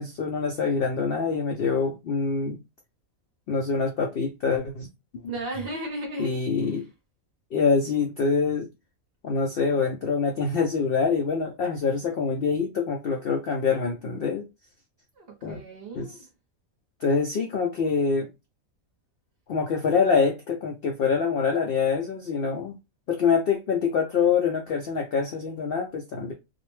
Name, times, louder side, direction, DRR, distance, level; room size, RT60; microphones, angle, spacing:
voice 1, 0.0-2.6 3.5-4.9 6.2-6.8 7.5-8.7 9.2-14.4 15.4-15.6 15.9-16.2 17.0-18.3 19.5-22.7 23.1-26.3, left 5 dB, 70° left, 0.5 m, -25 dB
voice 2, 5.3-6.4 6.7-6.8 15.2-16.3, right 1 dB, 55° right, 0.8 m, -35 dB
2.5 x 2.0 x 3.0 m
omnidirectional pair, 1.5 m